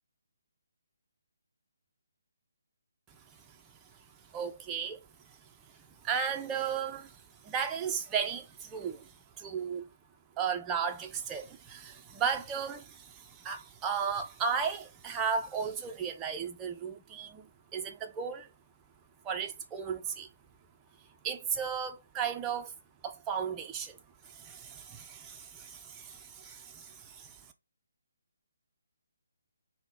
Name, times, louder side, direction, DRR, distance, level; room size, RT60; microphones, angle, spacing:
voice 1, 4.3-5.0 6.0-7.2 7.4-9.1 9.4-9.8 10.4-17.5 17.7-18.5 19.2-20.3 21.2-22.7 23.0-24.0 24.3-27.4, right 6 dB, 15° right, 0.4 m, -35 dB
3.6 x 2.1 x 3.5 m
figure-of-eight pair, 145°, 0 cm